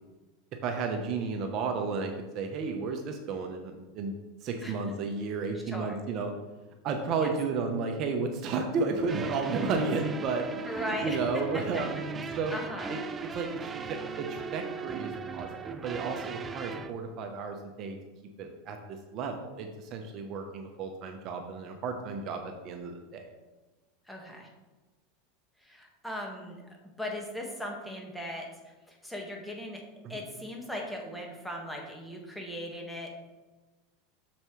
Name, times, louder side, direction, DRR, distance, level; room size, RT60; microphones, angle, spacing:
voice 1, 0.6-4.1 4.4-6.3 6.8-12.5 12.9-13.0 13.3-18.0 18.4-23.3 30.0-30.2, right 4 dB, 45° right, 4 dB, 0.9 m, -33 dB
sound 1, 9.1-16.9, right 5 dB, 25° right, 0.5 m, -38 dB
voice 2, 10.7-11.2 11.5-11.6 12.2-12.9 24.1-24.5 25.6-26.6 27.0-29.8 30.1-33.1, left 1 dB, ahead, -1 dB, 1.7 m, -38 dB
7.2 x 6.8 x 3.2 m, 1.2 s
supercardioid pair, 115°, 0 cm